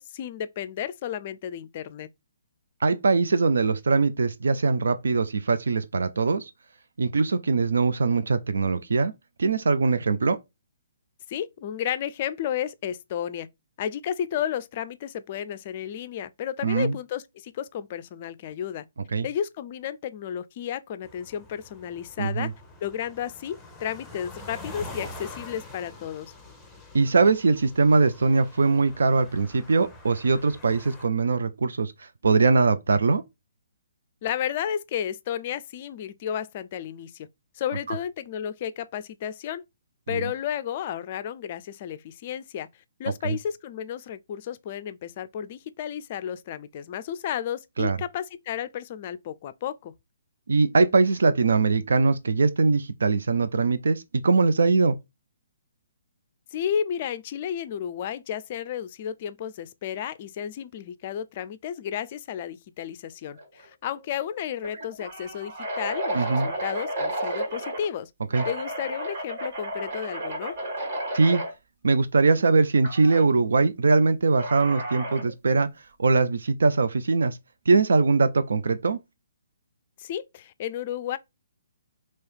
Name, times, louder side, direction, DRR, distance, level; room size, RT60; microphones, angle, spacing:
voice 1, 0.0-2.1 11.3-13.5 13.8-18.8 19.2-22.5 22.8-26.3 34.2-37.3 37.5-39.6 40.1-42.7 43.0-49.9 56.5-68.1 68.4-70.6 80.0-81.2, left 9 dB, 40° left, 0.4 m, -32 dB
voice 2, 2.8-6.4 7.0-9.1 9.4-10.4 16.6-16.9 19.1-19.3 22.2-22.5 26.9-31.9 32.2-33.2 40.1-40.2 43.2-43.4 47.8-48.0 50.5-54.9 66.1-66.5 68.3-68.4 71.1-71.4 71.8-75.7 76.0-77.4 77.7-79.0, right 4 dB, 65° right, 0.5 m, -21 dB
sound 1, 21.0-31.1, left 2 dB, 5° left, 0.9 m, -45 dB
sound 2, 63.4-63.7 64.0-64.1 64.6-67.9 68.3-71.5 72.8-73.3 74.4-75.3, right 1 dB, 45° right, 1.9 m, -32 dB
3.1 x 2.9 x 4.6 m
figure-of-eight pair, 130°, 0 cm